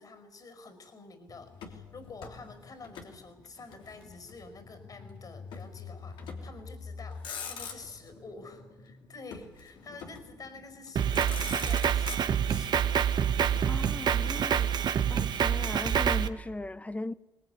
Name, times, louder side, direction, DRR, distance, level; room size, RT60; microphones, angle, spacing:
voice 1, 0.0-13.0, left 3 dB, 50° left, 5.0 m, -49 dB
sound 1, 1.3-11.8, left 4 dB, 65° left, 2.9 m, -49 dB
Motor vehicle (road), 1.5-3.2 3.4-4.5 5.5-5.7 6.2-6.6 7.0-8.1 9.3-10.4 10.9-11.0 11.1-12.7 13.5-15.2, left 6 dB, 85° left, 3.1 m, -44 dB
Drum kit, 11.0-16.3, right 8 dB, 65° right, 1.2 m, -27 dB
voice 2, 13.7-14.8 15.1-17.1, left 2 dB, 15° left, 0.8 m, -38 dB
22.5 x 19.5 x 9.4 m
supercardioid pair, 65°, 8 cm